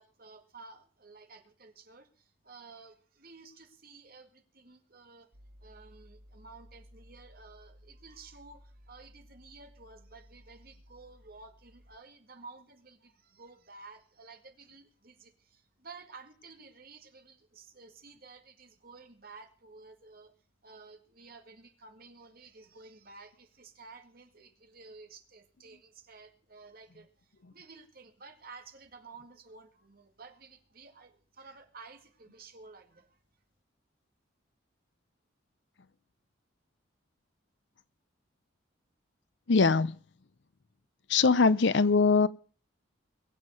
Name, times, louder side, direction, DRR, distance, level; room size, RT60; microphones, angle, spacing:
voice 1, 0.0-5.3 5.6-20.3 20.6-33.2, right 4 dB, 50° right, 2.1 m, -53 dB
sound 1, 5.3-12.0, equal, 65° right, 1.9 m, -57 dB
voice 2, 39.5-40.0 41.1-42.3, left 4 dB, 60° left, 0.6 m, -22 dB
22.5 x 7.5 x 6.5 m
head